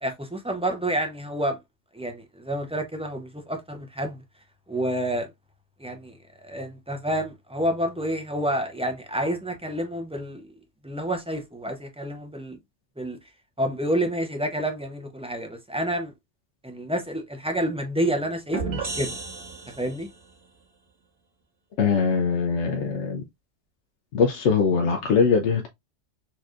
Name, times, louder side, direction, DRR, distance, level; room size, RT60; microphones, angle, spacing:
voice 1, 0.0-1.6 1.9-4.2 4.7-5.3 5.8-10.5 10.8-12.6 13.0-13.2 13.6-16.1 16.6-19.2 19.8-20.1, right 1 dB, 10° right, 0.4 m, -29 dB
sound 1, 18.5-20.2, right 4 dB, 55° right, 1.5 m, -33 dB
voice 2, 21.8-23.2 24.1-25.7, left 5 dB, 70° left, 0.9 m, -22 dB
4.3 x 3.1 x 2.4 m
omnidirectional pair, 1.3 m